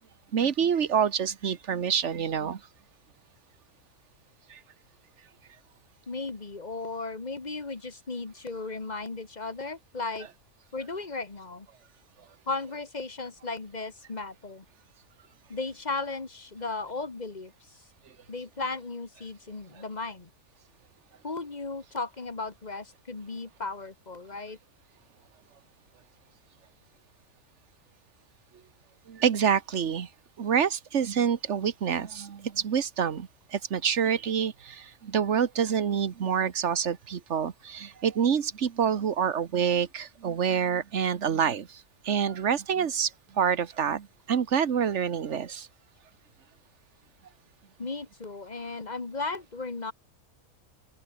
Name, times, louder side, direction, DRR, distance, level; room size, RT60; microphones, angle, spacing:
voice 1, 0.3-2.6 4.5-4.6 29.1-30.1 30.4-41.7 42.0-43.1 43.4-45.7, right 7 dB, 55° right, 1.4 m, -27 dB
voice 2, 6.1-10.3 10.7-11.7 12.5-14.7 15.5-17.5 18.3-20.3 21.2-24.6 47.8-49.9, left 3 dB, 30° left, 1.8 m, -35 dB
omnidirectional pair, 1.6 m